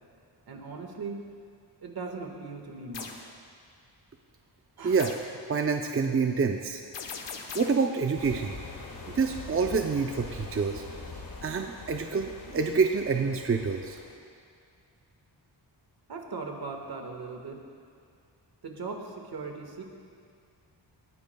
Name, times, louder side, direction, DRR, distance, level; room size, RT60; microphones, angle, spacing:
voice 1, 0.5-1.3 1.8-3.3 4.8-5.0 16.1-17.6 18.6-19.8, right 4 dB, 55° right, 2 dB, 1.7 m, -39 dB
sound 1, 2.9-3.3 5.0-5.4 6.9-7.9, left 5 dB, 80° left, 1.2 m, -39 dB
voice 2, 5.5-6.8 7.5-8.6 9.1-10.8 11.4-14.0, right 5 dB, 30° right, 4 dB, 0.6 m, -27 dB
sound 2, 8.2-14.2, left 3 dB, 50° left, 1.7 m, -43 dB
19.0 x 14.5 x 2.3 m, 2.2 s
wide cardioid pair, 100°, 43 cm